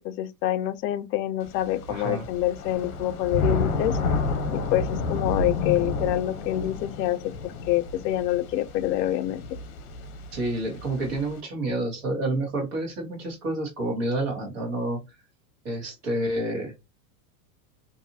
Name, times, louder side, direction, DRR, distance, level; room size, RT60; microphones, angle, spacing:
voice 1, 0.0-4.0 4.5-7.2 7.4-9.4, left 13 dB, 90° left, 0.5 m, -26 dB
Thunder / Rain, 1.4-11.4, left 3 dB, 60° left, 0.7 m, -31 dB
voice 2, 1.9-2.3 10.3-15.0 15.6-16.7, right 1 dB, 40° right, 1.3 m, -29 dB
2.7 x 2.4 x 2.6 m
supercardioid pair, 180°, 48 cm